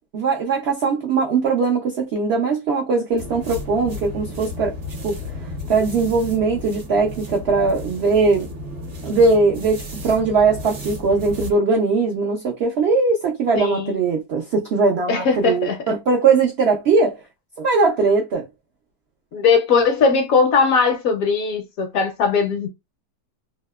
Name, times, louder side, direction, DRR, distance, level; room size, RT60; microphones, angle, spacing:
voice 1, 0.1-4.8 5.0-5.2 5.7-8.5 9.0-17.2 17.6-18.5, right 4 dB, 85° right, 0.5 m, -20 dB
sound 1, 3.2-11.6, left 2 dB, 50° right, 0.7 m, -33 dB
voice 2, 13.5-14.0 15.1-15.8 19.3-22.7, left 5 dB, 70° left, 0.9 m, -19 dB
2.7 x 2.0 x 2.2 m
omnidirectional pair, 1.7 m